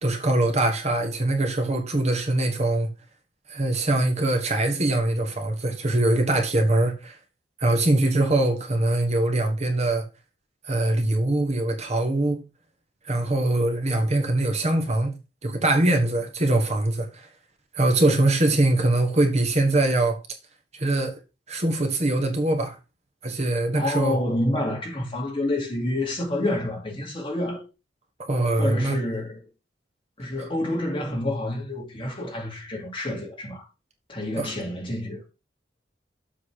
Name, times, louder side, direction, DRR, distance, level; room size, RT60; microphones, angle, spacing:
voice 1, 0.0-2.9 3.5-7.2 7.6-10.0 10.7-12.4 13.0-15.2 15.4-17.3 17.7-20.2 20.7-21.1 21.5-22.8 23.2-24.2 28.3-29.0 30.4-30.5 34.4-34.5, right 2 dB, 40° right, 1.5 m, -23 dB
voice 2, 23.7-27.6 28.6-29.4 30.2-33.7 34.1-35.3, left 1 dB, 30° left, 2.8 m, -28 dB
7.6 x 4.1 x 6.5 m
head